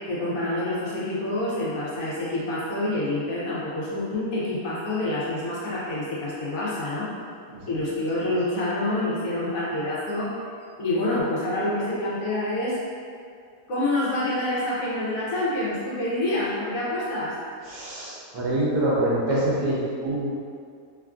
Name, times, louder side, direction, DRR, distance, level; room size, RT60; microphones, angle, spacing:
voice 1, 0.1-7.1 7.7-10.3 10.8-12.8 13.7-17.3, left 1 dB, 65° left, -8 dB, 1.1 m, -27 dB
voice 2, 17.6-20.3, right 1 dB, 85° right, -6 dB, 1.3 m, -25 dB
3.2 x 2.4 x 2.4 m, 2.2 s
omnidirectional pair, 1.6 m